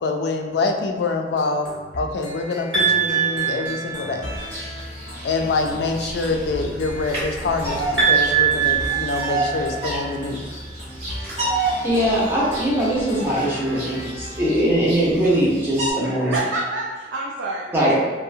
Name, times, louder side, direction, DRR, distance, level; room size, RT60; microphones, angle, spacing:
voice 1, 0.0-4.3 5.2-10.4, left 3 dB, 60° left, 3 dB, 0.3 m, -25 dB
sound 1, 1.1-14.7, left 1 dB, 40° left, 0.7 m, -38 dB
sound 2, 2.7-4.4 8.0-10.0, right 7 dB, 65° right, 1.0 m, -21 dB
Bird vocalization bird call bird song, 4.3-15.9, right 2 dB, 35° right, 0.8 m, -30 dB
voice 2, 11.8-16.3 17.7-17.9, right 1 dB, 10° right, -6 dB, 0.6 m, -21 dB
voice 3, 16.0-18.1, right 2 dB, 85° right, -3 dB, 0.4 m, -28 dB
2.6 x 2.1 x 2.6 m, 1.5 s
head